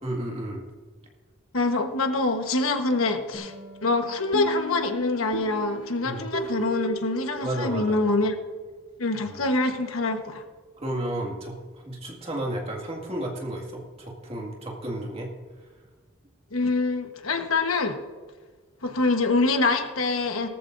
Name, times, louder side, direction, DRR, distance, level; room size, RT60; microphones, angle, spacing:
voice 1, 0.0-0.6 6.0-6.3 7.4-8.0 9.3-9.4 10.8-15.3, right 1 dB, 30° right, 0 dB, 2.1 m, -32 dB
voice 2, 1.5-3.5 3.8-8.3 9.0-10.4 16.5-18.0 18.8-20.5, left 3 dB, 90° left, 5 dB, 1.3 m, -25 dB
sound 1, 3.3-8.0, right 1 dB, 70° left, 3.3 m, -37 dB
18.5 x 14.0 x 2.7 m, 1.4 s
head